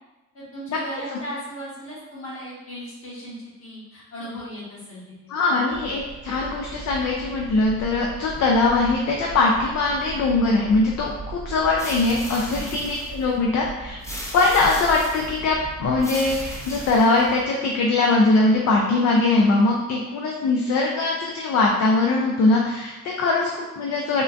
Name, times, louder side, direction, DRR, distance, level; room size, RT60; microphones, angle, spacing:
voice 1, 0.3-3.3 3.6-5.3 12.4-12.7, equal, 50° left, -7 dB, 1.4 m, -37 dB
voice 2, 5.3-14.0 14.3-24.2, left 3 dB, 65° left, -1 dB, 0.5 m, -21 dB
sound 1, 5.7-17.0, right 3 dB, 35° right, 0.6 m, -38 dB
sound 2, 11.8-13.3 14.0-15.4 16.0-17.4, left 1 dB, 10° left, 0.5 m, -37 dB
3.6 x 2.2 x 2.5 m, 1.1 s
cardioid pair, 90°, 30 cm